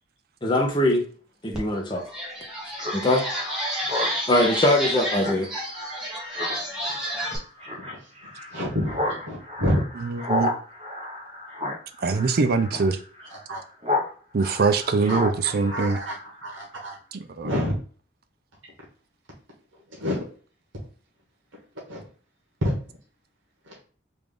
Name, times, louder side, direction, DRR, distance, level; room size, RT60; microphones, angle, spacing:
voice 1, 0.4-1.0 1.4-2.0 2.9-3.3 4.3-5.5, left 1 dB, 25° left, 0.6 m, -21 dB
sound 1, 1.5-1.6 2.0-7.4, equal, 5° right, 0.8 m, -30 dB
Speech synthesizer, 2.8-14.1 14.4-16.6, left 1 dB, 30° right, 0.9 m, -33 dB
voice 2, 8.5-9.8 13.5-13.6 15.1-15.2 15.7-16.1 16.4-17.0 17.4-17.7 20.0-20.2 21.9-22.0 22.6-22.7 23.7-23.8, equal, 80° right, 1.2 m, -28 dB
voice 3, 10.0-10.5 12.0-13.0 14.3-16.0 17.1-17.5, right 4 dB, 50° right, 0.3 m, -23 dB
3.3 x 2.5 x 3.6 m
head